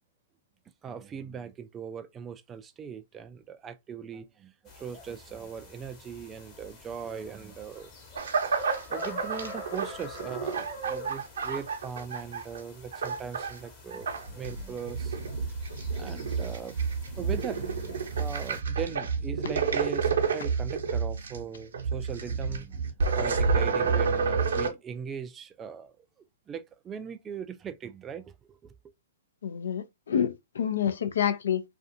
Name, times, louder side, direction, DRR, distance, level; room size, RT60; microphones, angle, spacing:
voice 1, 0.8-7.9 8.9-15.2 16.0-16.8 17.1-22.8 23.1-25.9 26.5-28.7, right 7 dB, 20° right, 0.3 m, -39 dB
sound 1, 4.7-18.6, left 1 dB, 25° left, 1.0 m, -45 dB
sound 2, 8.1-12.6 12.9-13.6 13.9-24.7, right 5 dB, 70° right, 0.7 m, -29 dB
voice 2, 29.4-31.6, left 8 dB, 70° left, 0.5 m, -28 dB
2.5 x 2.3 x 2.6 m
hypercardioid pair, 125°, 0 cm